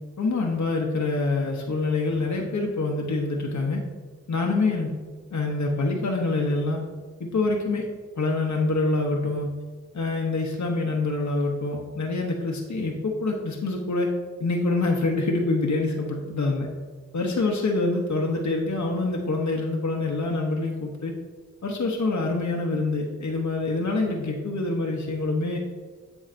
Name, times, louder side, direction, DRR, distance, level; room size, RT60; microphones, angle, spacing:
voice 1, 0.2-3.8 4.3-5.0 5.3-6.8 7.2-7.9 8.2-9.5 9.9-14.1 14.4-16.7 17.1-21.1 21.6-25.6, left 3 dB, 75° left, 0 dB, 0.9 m, -26 dB
8.2 x 7.0 x 2.6 m, 1.5 s
wide cardioid pair, 70°, 29 cm